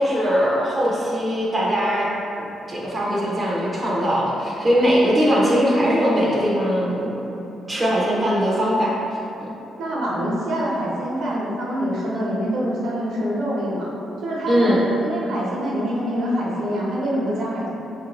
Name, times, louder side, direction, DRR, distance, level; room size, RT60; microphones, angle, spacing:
voice 1, 0.0-2.1 2.4-7.1 7.7-8.9 14.5-14.8, equal, 15° right, -6 dB, 0.4 m, -20 dB
voice 2, 9.8-13.9 14.2-17.7, equal, 65° right, -5 dB, 0.8 m, -25 dB
4.9 x 2.4 x 2.9 m, 3.0 s
cardioid pair, 180°, 0 cm